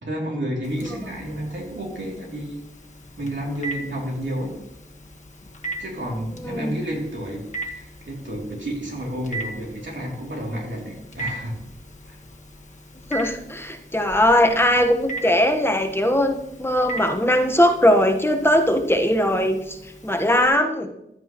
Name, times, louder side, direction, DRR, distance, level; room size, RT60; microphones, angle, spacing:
voice 1, 0.0-2.6 3.2-4.5 5.8-11.6 12.0-12.2, equal, 65° right, -2 dB, 3.0 m, -30 dB
Telephone, 0.6-20.5, right 2 dB, 35° left, 1.4 m, -39 dB
voice 2, 6.4-6.8 13.1-19.8 20.0-20.9, left 1 dB, 10° left, 4 dB, 1.1 m, -20 dB
12.0 x 8.6 x 3.0 m, 0.84 s
wide cardioid pair, 65°, 20 cm